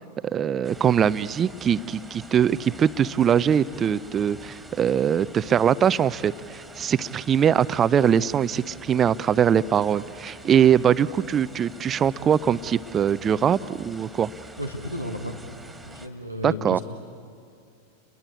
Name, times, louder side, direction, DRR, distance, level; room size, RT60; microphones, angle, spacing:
voice 1, 0.2-14.3 16.4-16.8, right 8 dB, 25° right, 18 dB, 0.6 m, -22 dB
sound 1, 0.6-16.1, right 1 dB, 5° right, 2.2 m, -45 dB
voice 2, 14.6-15.3 15.8-16.8, left 1 dB, 85° left, 5 dB, 1.9 m, -33 dB
29.5 x 22.5 x 8.4 m, 2.4 s
figure-of-eight pair, 90°, 0 cm